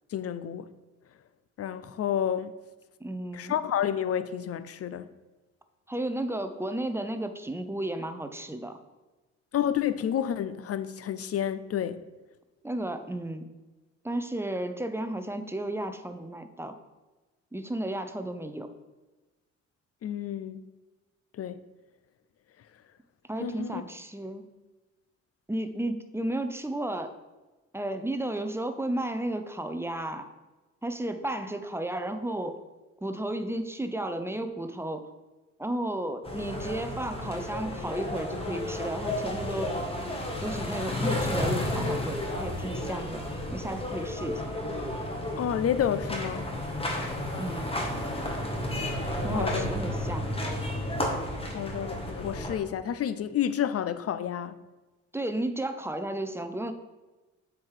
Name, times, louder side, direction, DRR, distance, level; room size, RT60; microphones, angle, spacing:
voice 1, 0.1-0.7 1.6-2.5 3.3-5.1 9.5-12.0 20.0-20.7 21.4-21.6 23.4-23.8 45.4-46.5 49.3-49.7 51.5-54.6, left 9 dB, 50° left, 0.6 m, -30 dB
voice 2, 3.0-3.6 5.9-8.8 12.6-13.5 14.0-16.8 17.5-18.7 23.3-24.5 25.5-27.1 27.7-30.3 30.8-32.6 33.0-35.1 35.6-39.8 40.4-43.2 43.5-44.6 47.4-47.8 49.2-50.3 55.1-56.7, right 1 dB, 10° right, 0.7 m, -33 dB
sound 1, 36.2-52.6, left 1 dB, 20° left, 1.5 m, -32 dB
7.7 x 4.9 x 5.7 m
cardioid pair, 90°, 30 cm